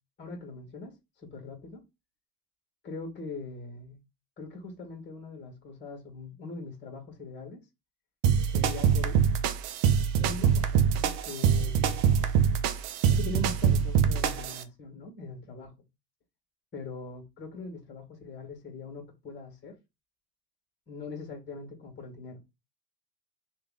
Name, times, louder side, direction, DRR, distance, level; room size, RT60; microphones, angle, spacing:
voice 1, 0.2-1.8 2.8-4.0 4.4-7.6 8.5-9.2 10.2-12.0 13.1-15.7 16.7-19.8 20.9-22.4, left 3 dB, 25° left, 1.6 m, -41 dB
sound 1, 8.2-14.6, right 7 dB, 55° right, 0.6 m, -24 dB
3.3 x 2.5 x 3.6 m
supercardioid pair, 110°, 45 cm